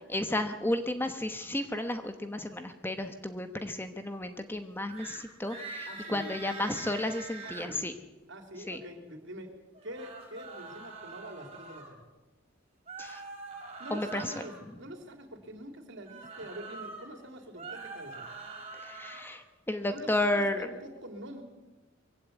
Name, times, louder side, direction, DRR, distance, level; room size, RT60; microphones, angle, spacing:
voice 1, 0.1-7.9 8.7-8.8 13.0-13.2 13.9-14.3 18.8-20.7, left 1 dB, 10° left, 8 dB, 1.1 m, -32 dB
sound 1, 4.9-5.2 5.5-7.7 9.7-11.9 12.9-14.6 16.0-17.1 17.5-19.3, right 3 dB, 30° right, 4.7 m, -44 dB
voice 2, 5.8-6.3 7.4-7.9 8.3-9.5 9.8-12.1 13.8-18.3 19.9-21.4, right 1 dB, 65° right, 5 dB, 3.4 m, -45 dB
23.0 x 16.0 x 8.3 m, 1.1 s
head